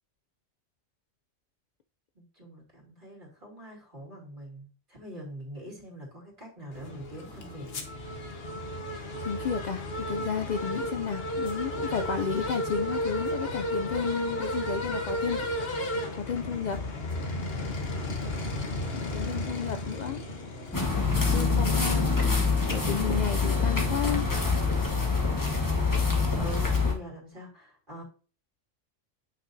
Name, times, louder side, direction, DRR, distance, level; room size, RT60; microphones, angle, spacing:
voice 1, 2.1-7.9 26.4-28.0, right 1 dB, 40° right, -3 dB, 2.9 m, -44 dB
sound 1, 6.7-21.3, left 1 dB, 50° left, 1.3 m, -33 dB
voice 2, 9.2-15.5 16.1-16.8 18.9-20.2 21.3-22.1 22.4-24.2, left 7 dB, 80° left, 7 dB, 0.4 m, -32 dB
sound 2, 20.7-26.9, left 4 dB, 15° left, 1.0 m, -25 dB
9.0 x 5.8 x 2.7 m, 0.38 s
omnidirectional pair, 1.3 m